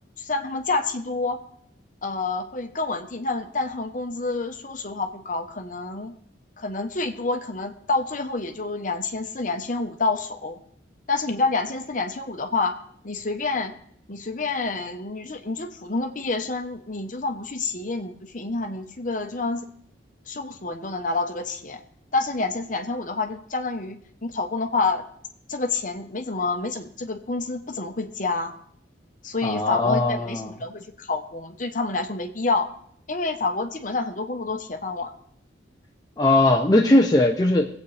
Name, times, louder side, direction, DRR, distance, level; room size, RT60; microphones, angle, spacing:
voice 1, 0.2-1.4 2.0-6.2 6.6-10.6 11.1-12.7 13.0-13.7 14.1-19.7 20.3-21.8 22.1-25.0 25.5-28.5 29.2-32.7 33.1-35.1, left 3 dB, 45° left, 6 dB, 1.0 m, -28 dB
voice 2, 29.4-30.5 36.2-37.7, left 2 dB, 20° left, 1 dB, 0.6 m, -19 dB
21.0 x 8.3 x 3.4 m, 0.66 s
head